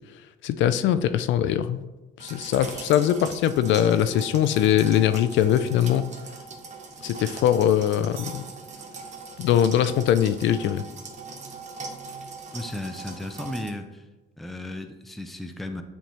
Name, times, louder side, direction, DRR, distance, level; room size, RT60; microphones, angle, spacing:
voice 1, 0.4-1.8 2.2-6.0 7.0-8.5 9.4-10.8, left 10 dB, 70° left, 12 dB, 0.4 m, -22 dB
sound 1, 2.2-13.7, right 4 dB, 35° right, 0.8 m, -40 dB
sound 2, 8.2-9.5, right 6 dB, 80° right, 0.9 m, -49 dB
voice 2, 12.5-14.0 14.4-15.8, left 1 dB, ahead, 6 dB, 0.4 m, -35 dB
9.7 x 3.4 x 3.0 m, 1.1 s
cardioid pair, 140°, 20 cm